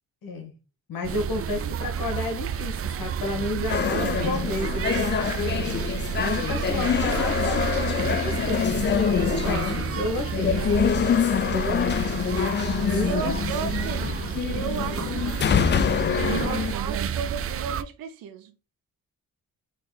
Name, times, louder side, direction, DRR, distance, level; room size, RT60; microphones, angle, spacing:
voice 1, 0.2-0.5 0.9-5.8 6.2-8.8 9.3-10.7 11.5-12.1 12.9-13.3, left 2 dB, 85° left, 1.6 m, -31 dB
sound 1, 1.0-17.8, right 8 dB, 45° right, 0.4 m, -30 dB
voice 2, 3.6-4.3 13.0-18.5, right 7 dB, 85° right, 0.7 m, -35 dB
sound 2, 3.7-16.8, left 8 dB, 35° left, 0.4 m, -26 dB
4.2 x 3.2 x 3.9 m
cardioid pair, 90°, 34 cm